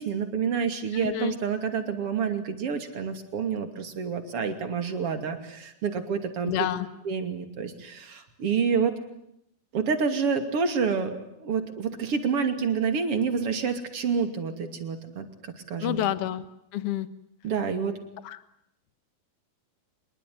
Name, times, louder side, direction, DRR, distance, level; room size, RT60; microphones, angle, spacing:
voice 1, 0.0-6.7 7.0-9.0 9.7-16.0 17.4-18.0, right 6 dB, 40° right, 8 dB, 3.3 m, -28 dB
voice 2, 0.9-1.3 6.5-6.9 15.8-16.4 16.7-17.1 18.2-18.4, left 11 dB, 60° left, 14 dB, 1.7 m, -28 dB
25.5 x 22.5 x 9.5 m, 0.76 s
omnidirectional pair, 4.2 m